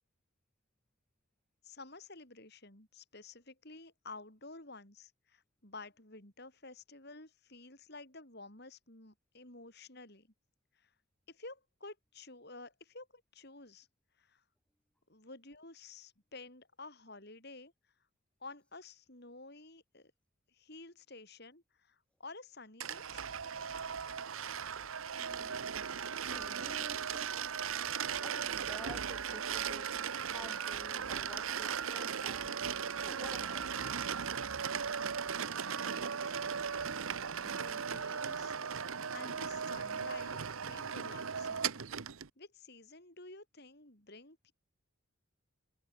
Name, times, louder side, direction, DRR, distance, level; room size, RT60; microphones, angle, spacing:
voice 1, 1.6-10.3 10.8-10.9 11.3-13.9 14.2-14.4 15.1-17.7 18.4-20.1 20.5-23.3 35.6-36.4 37.4-38.5 39.1-41.8 42.4-44.5, left 3 dB, 50° left, 5.4 m, -52 dB
sound 1, 22.8-42.3, right 7 dB, 75° right, 0.9 m, -37 dB
voice 2, 25.1-25.6 26.2-27.5 28.2-30.0 30.3-32.5 32.9-34.0, left 1 dB, 5° left, 0.6 m, -52 dB
head